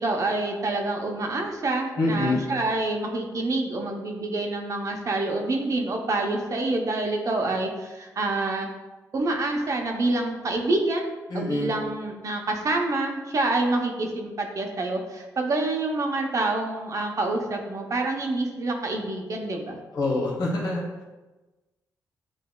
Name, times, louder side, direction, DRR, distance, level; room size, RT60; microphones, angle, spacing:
voice 1, 0.0-8.7 9.1-19.8, right 2 dB, 50° right, 2 dB, 0.8 m, -27 dB
voice 2, 2.0-2.4 11.3-11.7 19.9-20.8, left 2 dB, 80° left, -2 dB, 1.2 m, -25 dB
7.7 x 2.7 x 2.3 m, 1.2 s
cardioid pair, 75°, 7 cm